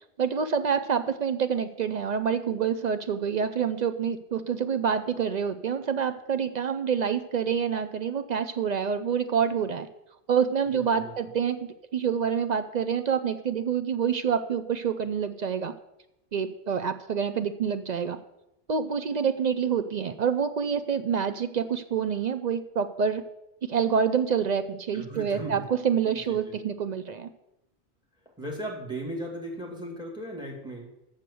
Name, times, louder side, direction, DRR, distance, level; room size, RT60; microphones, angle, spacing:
voice 1, 0.2-9.9 10.3-15.7 16.3-18.2 18.7-23.2 23.6-27.3, right 7 dB, 55° right, 9 dB, 0.5 m, -27 dB
voice 2, 10.7-11.1 24.9-25.6 26.0-26.6 28.4-30.9, right 1 dB, 5° right, 0 dB, 2.3 m, -37 dB
7.6 x 6.6 x 6.9 m, 0.89 s
omnidirectional pair, 1.2 m